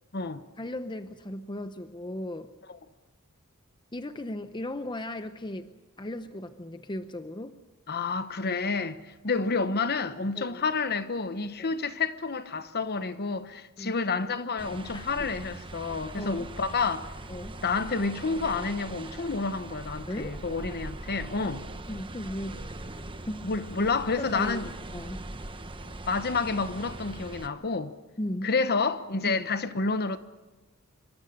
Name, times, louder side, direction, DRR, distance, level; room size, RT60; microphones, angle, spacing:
voice 1, 0.6-2.5 3.9-5.7 6.0-7.6 10.3-10.6 11.6-11.8 13.8-14.0 14.9-15.3 16.2-16.5 17.3-17.6 20.1-20.4 21.9-22.6 22.9-23.5 24.2-24.6 24.9-25.2 28.2-28.5 29.3-29.5, left 1 dB, 20° left, 0.8 m, -36 dB
voice 2, 7.9-17.1 17.6-21.6 23.4-24.7 25.8-27.9 28.4-30.2, left 4 dB, 45° left, 1.0 m, -29 dB
sound 1, 14.6-27.5, right 2 dB, 25° right, 1.1 m, -41 dB
26.0 x 23.0 x 6.7 m
head